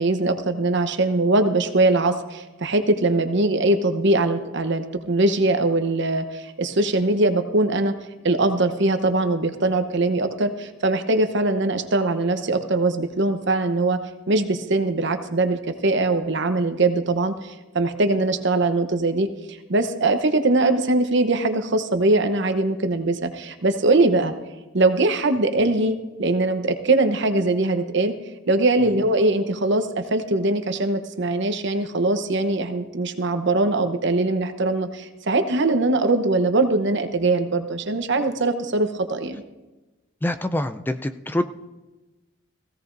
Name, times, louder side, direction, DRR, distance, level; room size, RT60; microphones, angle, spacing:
voice 1, 0.0-8.0 8.2-14.0 14.3-24.3 24.7-28.1 28.5-39.3, right 2 dB, 65° right, 8 dB, 0.9 m, -21 dB
voice 2, 40.2-41.5, left 1 dB, 10° left, 8 dB, 0.4 m, -26 dB
17.5 x 16.0 x 2.6 m, 1.1 s
head